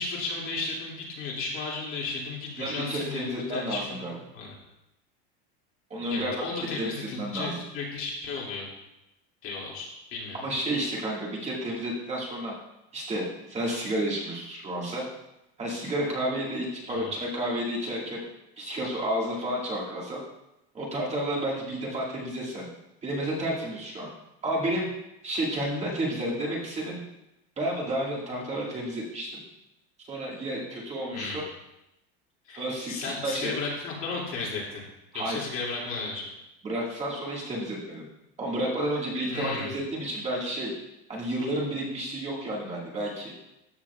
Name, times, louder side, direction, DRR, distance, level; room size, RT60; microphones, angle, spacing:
voice 1, 0.0-4.0 4.3-4.6 6.1-8.7 9.4-10.4 16.9-17.1 31.1-31.4 32.5-34.8 35.1-36.3 39.3-39.7, left 4 dB, 45° left, -3 dB, 2.5 m, -34 dB
voice 2, 2.6-4.2 5.9-6.4 6.8-6.9 7.2-7.6 10.4-12.5 12.9-15.1 15.6-18.2 18.6-20.2 20.7-22.7 23.0-24.1 24.4-24.9 25.2-27.0 27.6-29.4 30.0-31.4 32.5-33.5 35.1-35.4 36.6-38.1 38.4-40.7 41.1-43.3, right 1 dB, 20° right, -3 dB, 1.9 m, -31 dB
13.0 x 6.2 x 2.3 m, 0.90 s
supercardioid pair, 140°, 30 cm